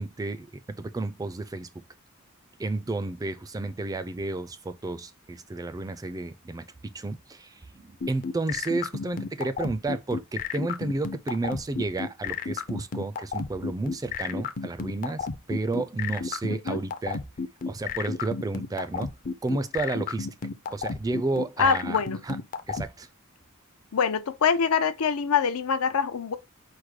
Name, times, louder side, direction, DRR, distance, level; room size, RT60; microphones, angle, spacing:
voice 1, 0.0-1.7 2.6-17.2 17.7-19.2 19.4-20.3 20.7-22.4 22.7-23.1, right 2 dB, 15° right, 0.3 m, -32 dB
sound 1, 8.0-22.9, left 5 dB, 40° left, 0.5 m, -31 dB
voice 2, 16.5-16.8 21.6-22.2 23.9-26.4, left 6 dB, 85° left, 0.6 m, -24 dB
4.7 x 2.2 x 4.7 m
head